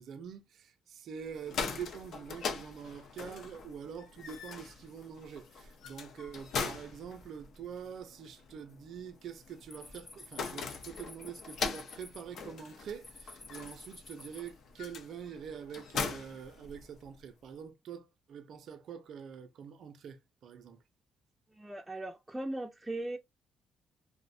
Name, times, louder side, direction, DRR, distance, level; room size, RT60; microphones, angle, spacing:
voice 1, 0.0-20.8, right 7 dB, 65° right, 0.5 m, -45 dB
sound 1, 1.3-17.2, left 5 dB, 70° left, 0.5 m, -42 dB
sound 2, 9.5-14.5, left 3 dB, 35° left, 0.7 m, -52 dB
voice 2, 21.5-23.2, right 1 dB, 10° right, 0.4 m, -38 dB
2.5 x 2.0 x 2.4 m
cardioid pair, 90°, 0 cm